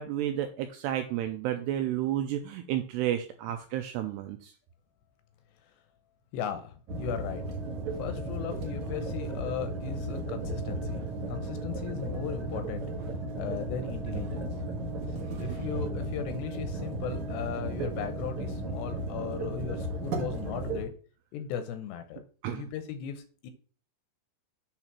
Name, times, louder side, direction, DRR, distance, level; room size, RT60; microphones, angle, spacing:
voice 1, 0.0-4.5 15.0-15.6 22.4-22.7, right 11 dB, 85° right, 7 dB, 2.4 m, -32 dB
voice 2, 6.3-6.7 7.0-7.4 8.0-12.8 13.4-14.5 15.4-20.9 21.3-22.2 22.5-23.5, left 8 dB, 75° left, 8 dB, 2.6 m, -37 dB
sound 1, 6.9-20.8, right 2 dB, 65° right, 1.9 m, -34 dB
8.8 x 3.9 x 5.9 m, 0.40 s
omnidirectional pair, 5.4 m